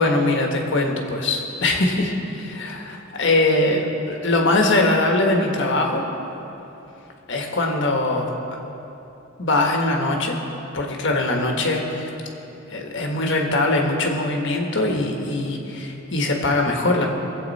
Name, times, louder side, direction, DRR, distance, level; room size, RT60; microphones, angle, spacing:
voice 1, 0.0-2.8 3.1-6.0 7.3-8.3 9.4-10.4 10.7-12.1 12.7-17.1, left 2 dB, 60° left, 1 dB, 1.5 m, -21 dB
21.0 x 8.2 x 4.2 m, 3.0 s
head